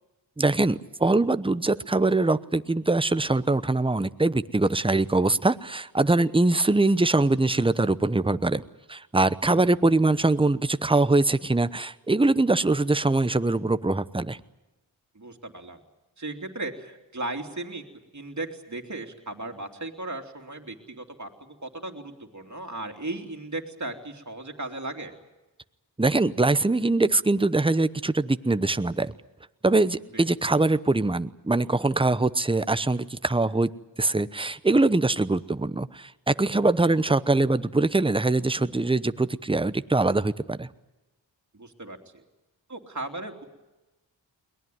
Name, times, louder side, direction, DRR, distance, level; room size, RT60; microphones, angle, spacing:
voice 1, 0.4-8.6 8.9-14.4 26.0-29.1 29.6-33.7 34.0-40.7, right 2 dB, 10° right, 15 dB, 0.9 m, -23 dB
voice 2, 15.1-15.8 16.2-17.8 18.1-25.1 30.1-30.2 41.5-42.2 42.7-43.4, right 2 dB, 40° right, 3 dB, 3.2 m, -36 dB
22.0 x 19.0 x 9.4 m, 1.1 s
cardioid pair, 45°, 45 cm